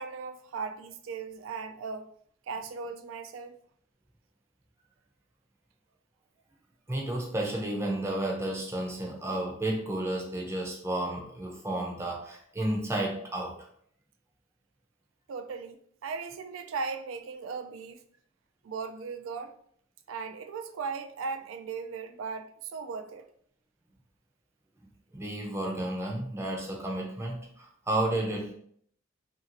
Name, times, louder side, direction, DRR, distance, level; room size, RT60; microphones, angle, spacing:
voice 1, 0.0-2.1 2.5-3.6 15.3-18.0 18.6-19.6 20.1-23.3, right 5 dB, 75° right, 0.3 m, -37 dB
voice 2, 6.9-13.7 25.1-28.5, right 1 dB, 15° right, 0.5 m, -32 dB
2.8 x 2.6 x 2.8 m
head